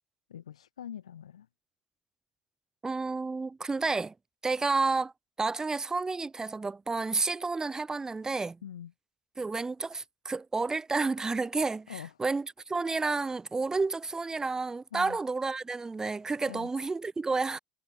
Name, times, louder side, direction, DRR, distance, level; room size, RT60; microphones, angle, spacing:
voice 1, 0.3-1.5 8.6-8.9 11.9-12.1 14.9-15.2 16.5-16.7, left 9 dB, 80° left, 0.5 m, -43 dB
voice 2, 2.8-4.1 4.4-5.1 5.4-8.6 9.4-17.6, right 3 dB, 20° right, 0.7 m, -30 dB
figure-of-eight pair, 60°, 3 cm